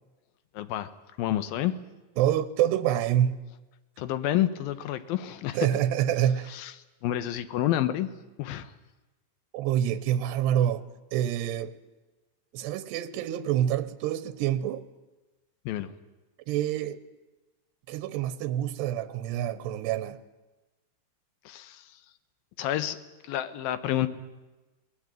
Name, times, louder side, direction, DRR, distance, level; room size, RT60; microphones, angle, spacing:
voice 1, 0.5-0.9 1.2-1.8 4.0-5.7 6.5-6.7 7.0-8.7 15.7-16.0 21.5-22.0 22.6-23.0 23.2-24.1, left 13 dB, 70° left, 2.8 m, -29 dB
voice 2, 2.2-3.4 5.5-6.5 9.5-11.7 12.5-14.9 16.5-17.0 17.9-20.2, right 11 dB, 90° right, 3.2 m, -27 dB
24.0 x 20.0 x 9.2 m
omnidirectional pair, 4.7 m